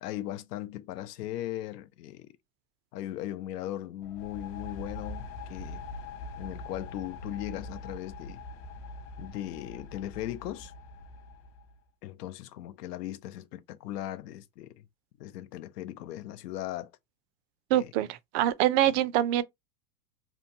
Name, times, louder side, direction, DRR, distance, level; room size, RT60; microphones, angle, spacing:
voice 1, 0.0-2.3 2.9-5.8 6.4-8.4 9.2-10.7 12.0-14.9 15.2-16.9 17.7-17.9, left 13 dB, 85° left, 0.6 m, -38 dB
sound 1, 4.0-11.8, left 2 dB, 45° left, 0.5 m, -43 dB
voice 2, 17.7-19.4, right 12 dB, 45° right, 0.4 m, -25 dB
2.9 x 2.2 x 2.6 m
supercardioid pair, 120°, 46 cm